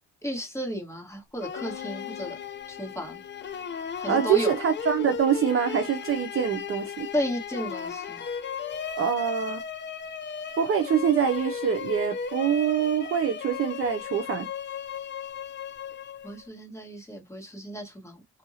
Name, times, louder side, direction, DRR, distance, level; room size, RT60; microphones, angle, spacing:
voice 1, 0.2-2.3 2.7-3.2 4.0-4.5 7.1-8.2 16.2-18.2, equal, 10° left, 1.7 m, -33 dB
sound 1, 1.4-16.5, left 7 dB, 35° left, 0.6 m, -36 dB
sound 2, 1.6-4.2, left 14 dB, 65° left, 0.9 m, -45 dB
voice 2, 4.1-7.1 9.0-9.6 10.6-14.5, right 8 dB, 45° right, 0.6 m, -25 dB
2.8 x 2.6 x 2.8 m
cardioid pair, 90°, 30 cm